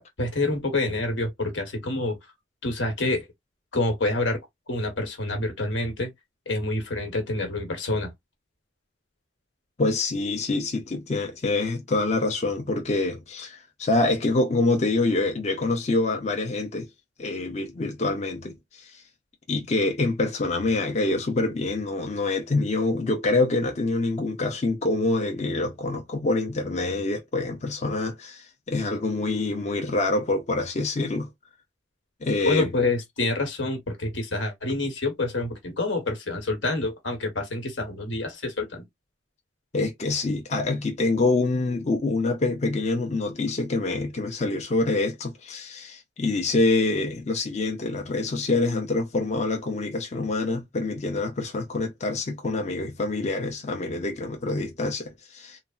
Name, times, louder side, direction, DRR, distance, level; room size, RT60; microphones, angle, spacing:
voice 1, 0.0-2.2 2.6-3.3 3.7-4.4 4.7-6.1 6.5-8.1 32.4-38.8, left 2 dB, 85° left, 1.2 m, -27 dB
voice 2, 9.8-16.9 17.2-19.0 19.5-31.3 32.2-32.7 39.7-55.6, left 2 dB, 35° left, 0.5 m, -26 dB
3.2 x 2.0 x 2.4 m
head